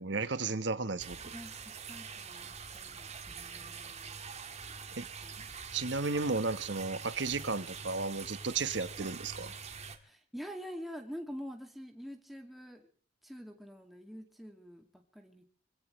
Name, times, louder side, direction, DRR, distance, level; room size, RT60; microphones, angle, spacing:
voice 1, 0.0-1.2 4.9-5.1 5.7-9.5, right 3 dB, 70° right, 13 dB, 1.3 m, -34 dB
sound 1, 1.0-10.0, right 5 dB, 35° right, 2.0 m, -45 dB
voice 2, 1.3-4.2 5.2-5.3 9.0-9.1 10.0-12.8 13.2-15.5, equal, ahead, 2 dB, 2.3 m, -46 dB
26.5 x 17.0 x 3.3 m, 0.44 s
head